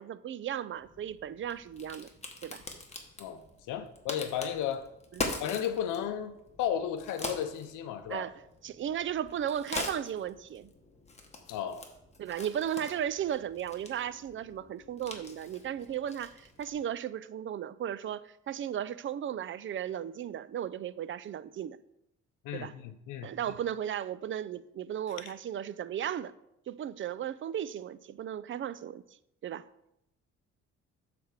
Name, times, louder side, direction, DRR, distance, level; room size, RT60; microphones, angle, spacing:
voice 1, 0.0-2.1 2.4-2.6 5.1-5.3 8.1-8.3 8.6-10.7 12.2-21.8 22.5-22.7 23.2-26.3 26.7-29.0 29.4-29.6, right 10 dB, 40° right, 0.4 m, -35 dB
Crack, 0.8-16.8, left 2 dB, 20° left, 1.2 m, -43 dB
voice 2, 3.7-4.9 5.4-8.3 11.5-11.9 22.4-23.3, left 9 dB, 90° left, 0.6 m, -34 dB
7.9 x 3.4 x 6.5 m
cardioid pair, 90°, 30 cm